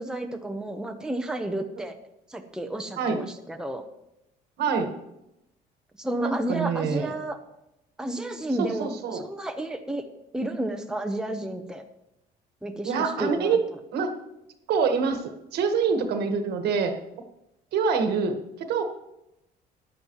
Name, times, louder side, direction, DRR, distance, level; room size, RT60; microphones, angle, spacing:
voice 1, 0.0-2.0 2.3-3.8 6.0-7.4 8.0-10.0 10.3-11.8 12.6-12.9 13.2-13.6, right 1 dB, 5° right, 4 dB, 1.0 m, -31 dB
voice 2, 4.6-4.9 6.2-7.1 8.6-9.2 12.8-13.6 13.9-14.1 14.7-16.9 17.7-18.8, right 5 dB, 75° right, 6 dB, 1.5 m, -25 dB
14.0 x 10.5 x 3.1 m, 0.87 s
cardioid pair, 110°, 17 cm